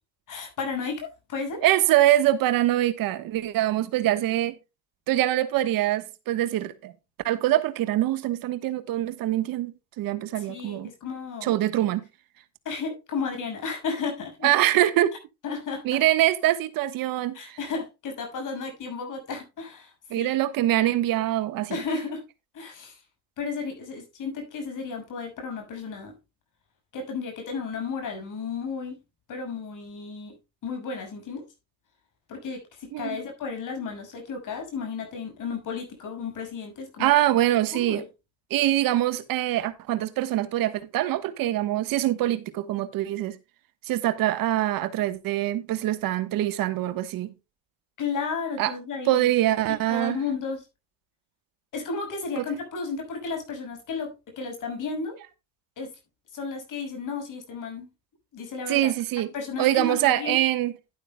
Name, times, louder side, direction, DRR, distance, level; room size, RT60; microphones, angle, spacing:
voice 1, 0.3-1.6 10.4-11.5 12.6-14.5 15.4-16.0 17.3-20.4 21.7-22.2 22.5-23.0 23.4-26.1 26.9-29.0 29.3-30.3 30.6-31.5 32.3-37.1 37.7-38.1 48.0-49.3 49.9-50.6 51.7-55.1 55.8-55.9 56.3-57.9 58.3-58.9 59.3-60.4, left 5 dB, 60° left, 6.4 m, -33 dB
voice 2, 1.6-4.6 5.1-6.9 7.2-10.9 11.4-12.1 14.4-15.1 15.8-17.6 20.1-21.8 32.9-33.2 37.0-38.0 38.5-43.4 43.9-47.3 48.6-48.7 49.0-50.2 52.4-52.5 58.7-59.3 59.6-60.7, right 14 dB, 70° right, 1.3 m, -24 dB
11.5 x 11.0 x 2.2 m
supercardioid pair, 85°, 35 cm